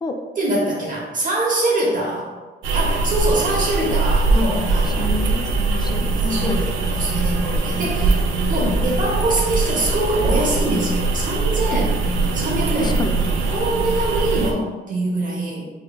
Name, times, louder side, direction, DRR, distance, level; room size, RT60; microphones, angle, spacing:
voice 1, 0.4-2.3 2.7-5.1 5.8-5.9 6.2-8.2 8.5-11.9 12.3-13.0 13.5-15.7, right 2 dB, 40° right, -3 dB, 1.0 m, -23 dB
sound 1, 2.6-14.5, right 3 dB, 75° right, 0.6 m, -21 dB
voice 2, 4.8-6.6 8.6-8.8 12.8-13.5, left 3 dB, 20° left, 5 dB, 0.5 m, -29 dB
4.5 x 3.1 x 2.3 m, 1.3 s
cardioid pair, 90°, 20 cm